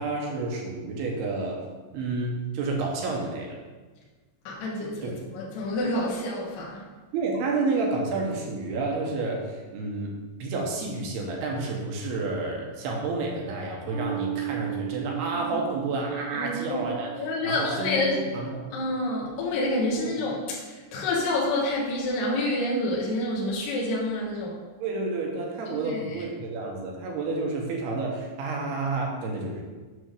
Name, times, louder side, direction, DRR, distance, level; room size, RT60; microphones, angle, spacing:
voice 1, 0.0-1.6 1.9-3.6 5.0-5.2 7.1-10.1 10.4-18.6 20.1-20.2 24.8-29.6, right 3 dB, 75° right, 0 dB, 2.7 m, -30 dB
voice 2, 4.5-6.8 16.3-16.8 17.2-18.2 18.7-24.5 25.7-26.2, left 2 dB, 70° left, -4 dB, 2.1 m, -28 dB
sound 1, 13.9-20.7, right 15 dB, 55° right, 2.2 m, -37 dB
7.9 x 3.5 x 6.3 m, 1.3 s
omnidirectional pair, 5.2 m